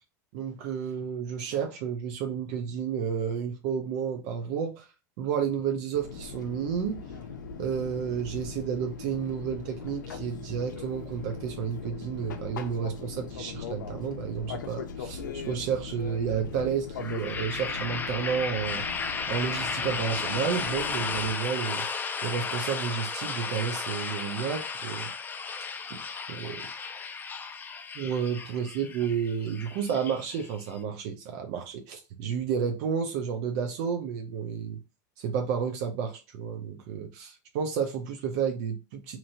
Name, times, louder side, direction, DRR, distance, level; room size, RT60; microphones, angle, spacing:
voice 1, 0.3-4.9 5.2-7.0 7.6-18.8 19.3-25.1 25.9-26.0 26.3-26.7 27.9-34.8 35.2-39.2, right 7 dB, 60° right, 0.6 m, -31 dB
Fixed-wing aircraft airplane, 5.9-21.3, left 5 dB, 90° left, 0.5 m, -40 dB
sound 1, 17.0-30.8, left 5 dB, 20° left, 0.4 m, -34 dB
2.8 x 2.7 x 2.6 m
hypercardioid pair, 105°, 10 cm